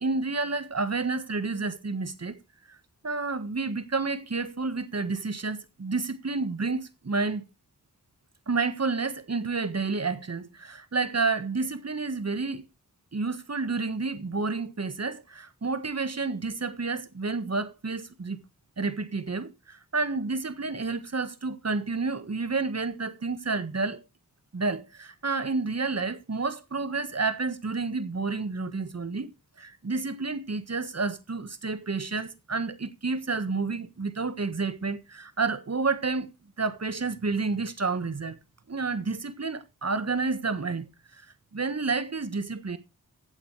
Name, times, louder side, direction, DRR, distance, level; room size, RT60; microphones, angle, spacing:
voice 1, 0.0-2.4 2.7-2.8 3.0-7.4 8.5-12.6 13.1-18.4 18.8-24.0 24.5-29.3 29.6-36.3 36.6-38.4 38.7-40.9 41.1-41.2 41.5-42.8, right 4 dB, 50° right, 1.5 m, -30 dB
15.5 x 8.6 x 3.3 m
cardioid pair, 50°, 34 cm